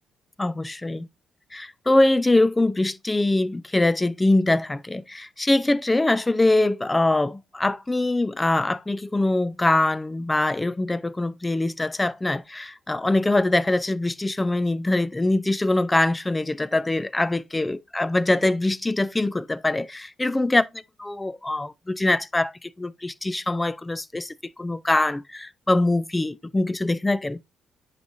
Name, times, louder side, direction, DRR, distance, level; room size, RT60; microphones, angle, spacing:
voice 1, 0.4-1.1 1.5-20.7 21.0-27.4, left 2 dB, 15° left, 0.3 m, -23 dB
9.7 x 4.7 x 2.7 m
cardioid pair, 90°, 0 cm